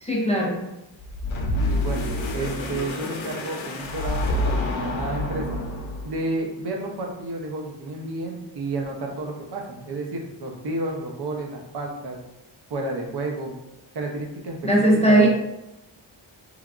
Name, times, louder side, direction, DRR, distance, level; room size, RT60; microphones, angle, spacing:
voice 1, 0.0-0.6 14.6-15.3, right 1 dB, 15° left, -3 dB, 0.3 m, -18 dB
sound 1, 1.0-6.2, left 1 dB, 85° left, 0.6 m, -27 dB
voice 2, 1.6-5.6 6.0-12.2 12.7-13.5 13.9-14.7 15.1-15.3, right 2 dB, 60° right, 1 dB, 0.6 m, -31 dB
3.2 x 2.3 x 2.4 m, 0.93 s
wide cardioid pair, 125°, 46 cm